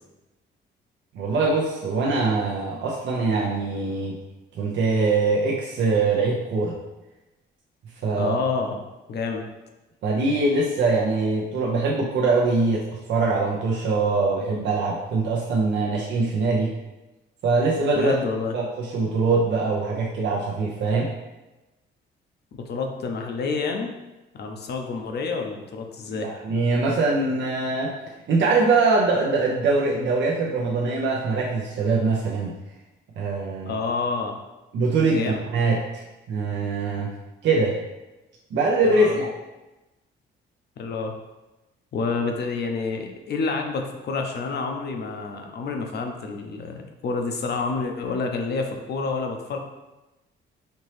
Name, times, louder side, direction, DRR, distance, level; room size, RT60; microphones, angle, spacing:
voice 1, 1.1-4.2 4.5-6.8 8.0-8.3 10.0-12.8 13.1-16.7 17.4-18.1 18.5-21.1 26.1-27.9 28.3-32.5 33.2-33.8 34.7-36.0 36.3-37.1 37.4-37.8 38.5-39.3, right 3 dB, 65° right, -3 dB, 0.7 m, -23 dB
voice 2, 8.1-8.8 9.1-9.4 17.9-18.5 22.7-23.9 24.3-26.3 33.6-34.3 35.1-35.4 38.8-39.2 40.8-41.1 41.9-49.6, left 4 dB, 55° left, 3 dB, 0.6 m, -28 dB
4.3 x 2.9 x 3.2 m, 1.0 s
cardioid pair, 90°, 20 cm